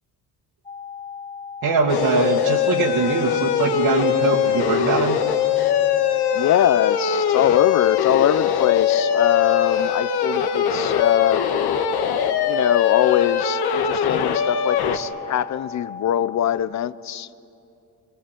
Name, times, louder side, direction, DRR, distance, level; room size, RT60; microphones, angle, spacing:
sound 1, 0.6-16.6, left 5 dB, 15° left, 2.1 m, -37 dB
voice 1, 1.6-5.2, right 4 dB, 65° right, -2 dB, 2.3 m, -22 dB
sound 2, 1.9-15.0, left 8 dB, 75° left, 1.8 m, -21 dB
voice 2, 6.3-11.5 12.5-17.4, left 11 dB, 45° left, 17 dB, 0.7 m, -22 dB
25.0 x 24.5 x 9.4 m, 2.7 s
cardioid pair, 130°, 40 cm